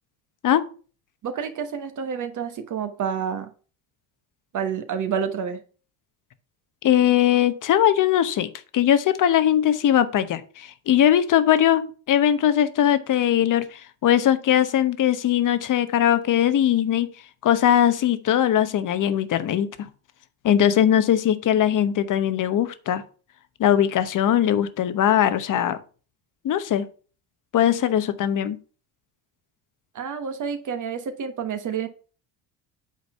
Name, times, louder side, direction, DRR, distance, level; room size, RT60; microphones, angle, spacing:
voice 1, 1.2-3.5 4.5-5.6 27.6-27.8 29.9-31.9, right 7 dB, 45° right, 7 dB, 1.3 m, -29 dB
voice 2, 6.8-17.1 17.4-19.9 20.4-23.0 23.6-25.8 26.4-26.9 27.5-28.6, left 10 dB, 45° left, 12 dB, 1.0 m, -20 dB
8.4 x 4.0 x 5.5 m, 0.38 s
cardioid pair, 105°, 43 cm